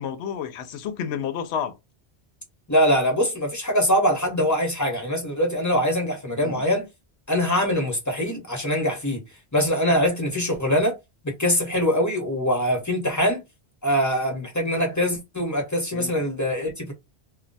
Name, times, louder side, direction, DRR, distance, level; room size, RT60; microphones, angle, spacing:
voice 1, 0.0-1.8 6.4-6.6 15.9-16.1, left 8 dB, 80° left, 0.8 m, -30 dB
voice 2, 2.7-6.9 7.3-9.2 9.5-10.9 11.2-13.4 13.8-16.9, equal, 20° left, 0.9 m, -23 dB
2.2 x 2.2 x 3.8 m
omnidirectional pair, 1.1 m